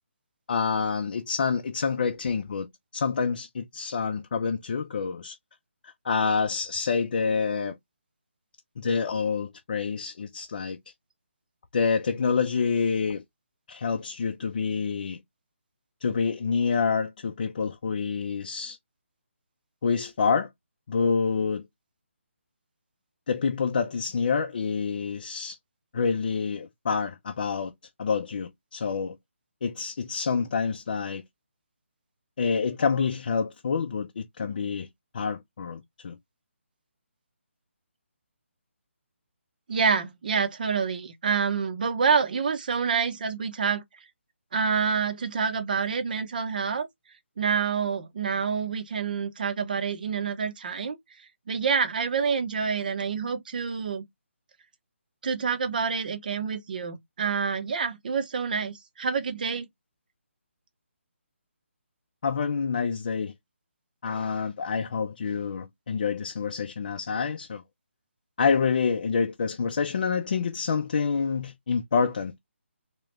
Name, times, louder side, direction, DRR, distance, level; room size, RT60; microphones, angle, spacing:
voice 1, 0.5-5.4 5.8-7.8 8.8-10.8 11.7-13.2 13.7-15.2 16.0-18.8 19.8-20.5 20.9-21.6 23.3-25.6 25.9-27.7 28.0-29.2 29.6-31.2 32.4-34.9 35.1-36.2 62.2-63.3 64.0-67.6 68.4-72.4, left 5 dB, 40° left, 0.6 m, -27 dB
voice 2, 39.7-43.8 44.5-46.9 47.4-51.0 51.5-54.0 55.2-59.7, right 6 dB, 40° right, 0.8 m, -27 dB
3.6 x 3.0 x 3.2 m
hypercardioid pair, 170°, 7 cm